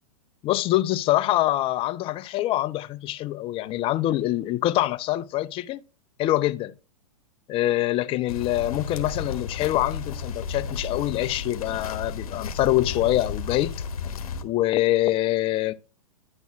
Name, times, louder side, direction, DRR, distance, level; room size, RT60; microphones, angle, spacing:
voice 1, 0.4-5.8 6.2-6.7 7.5-13.7 14.4-15.7, left 15 dB, 30° left, 0.5 m, -25 dB
sound 1, 8.3-14.4, left 5 dB, 70° left, 1.0 m, -33 dB
9.5 x 4.2 x 3.4 m
hypercardioid pair, 110°, 19 cm